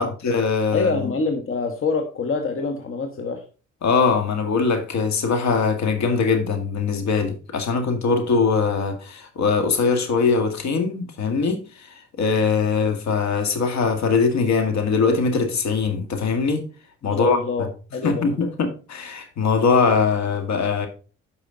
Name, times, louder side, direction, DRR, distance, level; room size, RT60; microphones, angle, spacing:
voice 1, 0.0-1.1 3.8-11.9 12.2-16.7 17.0-17.4 18.0-20.9, left 5 dB, 60° left, 1.9 m, -21 dB
voice 2, 0.7-3.4 7.7-7.8 17.0-18.3, left 4 dB, 40° left, 1.4 m, -26 dB
10.0 x 5.6 x 3.8 m
hypercardioid pair, 55°, 31 cm